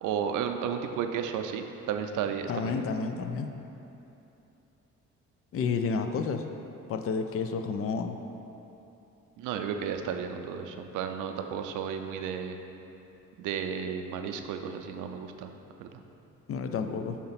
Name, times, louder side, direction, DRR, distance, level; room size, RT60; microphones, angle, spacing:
voice 1, 0.0-2.8 9.4-12.6 13.4-15.5 15.8-15.9, right 7 dB, 90° right, 6 dB, 0.5 m, -33 dB
voice 2, 2.5-3.5 5.5-6.4 6.9-8.2 16.5-17.2, left 5 dB, 50° left, 7 dB, 0.5 m, -30 dB
6.6 x 2.9 x 5.7 m, 3.0 s
cardioid pair, 90°, 30 cm